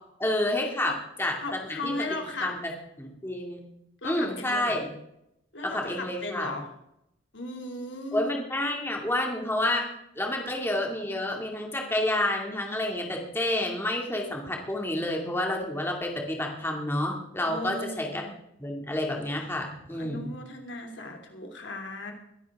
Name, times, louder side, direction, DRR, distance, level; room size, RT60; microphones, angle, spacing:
voice 1, 0.2-1.4 1.7-1.9 2.4-2.7 3.0-3.6 4.0-4.8 5.6-6.5 8.1-18.2 18.6-20.3, left 1 dB, 10° left, 0 dB, 2.3 m, -29 dB
voice 2, 1.4-2.6 4.0-4.8 5.5-6.7 7.3-8.4 17.4-18.3 19.9-22.1, left 2 dB, 65° left, 3 dB, 2.7 m, -36 dB
22.5 x 11.5 x 3.6 m, 0.81 s
head